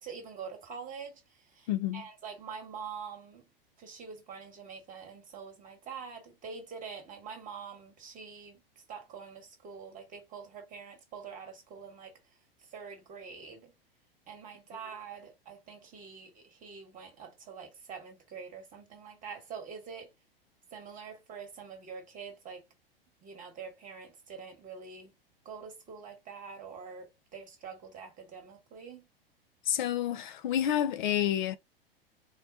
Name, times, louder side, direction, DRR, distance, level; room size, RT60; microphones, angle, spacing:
voice 1, 0.0-3.4 3.8-8.6 8.9-12.2 12.7-13.7 14.3-20.1 20.7-22.6 23.2-25.1 25.4-29.1, right 6 dB, 25° right, 1.2 m, -45 dB
voice 2, 1.7-2.0 29.7-31.6, left 11 dB, 55° left, 0.4 m, -29 dB
3.7 x 2.1 x 2.6 m
figure-of-eight pair, 95°, 30 cm